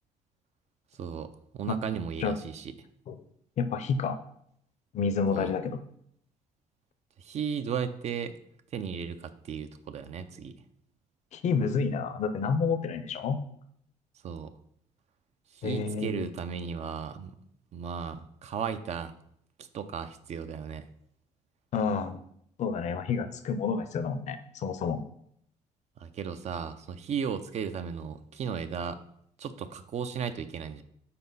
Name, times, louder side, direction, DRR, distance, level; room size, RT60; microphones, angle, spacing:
voice 1, 1.0-1.3 1.5-2.7 5.3-5.5 7.2-8.3 8.7-10.5 14.2-14.5 15.5-17.3 17.7-19.1 19.7-20.9 26.0-29.0 29.4-30.8, right 7 dB, 55° right, 11 dB, 0.5 m, -35 dB
voice 2, 3.6-4.2 4.9-5.8 11.3-13.4 15.6-16.3 21.7-22.2 22.6-25.0, left 5 dB, 60° left, 9 dB, 0.6 m, -29 dB
4.2 x 4.2 x 5.4 m, 0.70 s
cardioid pair, 90°, 14 cm